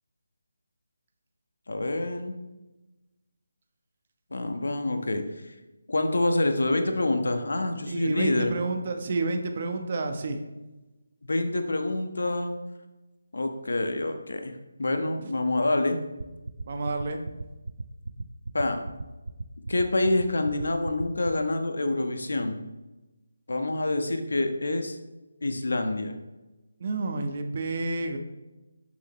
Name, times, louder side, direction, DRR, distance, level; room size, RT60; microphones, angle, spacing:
voice 1, 1.7-2.3 4.3-5.2 5.9-8.5 11.2-12.5 13.3-16.0 18.5-18.8 19.7-22.6 23.5-25.0 25.4-26.1, left 2 dB, 75° left, 6 dB, 1.2 m, -27 dB
voice 2, 7.9-10.4 16.7-17.2 26.8-28.2, right 3 dB, 40° right, 5 dB, 1.0 m, -30 dB
sound 1, 16.2-21.3, right 3 dB, 65° right, 0.5 m, -35 dB
11.5 x 6.3 x 3.1 m, 1.1 s
figure-of-eight pair, 160°, 0 cm